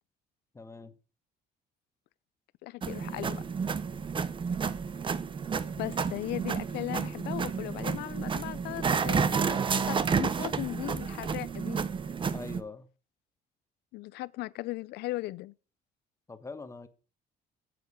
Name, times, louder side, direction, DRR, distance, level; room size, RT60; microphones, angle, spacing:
voice 1, 0.5-0.9 12.3-12.9 16.3-16.9, left 3 dB, 15° left, 1.3 m, -43 dB
voice 2, 2.6-3.4 4.5-4.6 5.7-11.8 13.9-15.5, left 18 dB, 80° left, 0.5 m, -37 dB
sound 1, 2.8-12.6, right 6 dB, 30° right, 0.8 m, -31 dB
9.5 x 8.0 x 5.1 m
cardioid pair, 110°, 17 cm